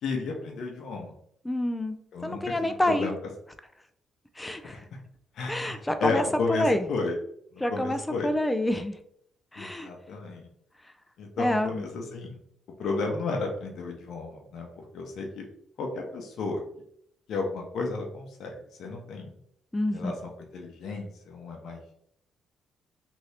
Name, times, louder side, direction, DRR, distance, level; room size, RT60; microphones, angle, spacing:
voice 1, 0.0-1.1 2.1-3.2 4.4-4.8 5.3-7.1 7.5-8.3 9.6-10.5 11.2-12.4 12.8-14.7 14.9-15.4 15.8-16.6 17.3-19.3 19.9-21.8, left 3 dB, 70° left, 1 dB, 0.7 m, -33 dB
voice 2, 1.4-3.1 4.4-4.8 5.5-6.8 7.6-9.0 9.5-9.9 11.4-11.8 19.7-20.1, left 1 dB, 10° left, 9 dB, 0.4 m, -28 dB
2.7 x 2.6 x 3.2 m, 0.71 s
cardioid pair, 90°, 0 cm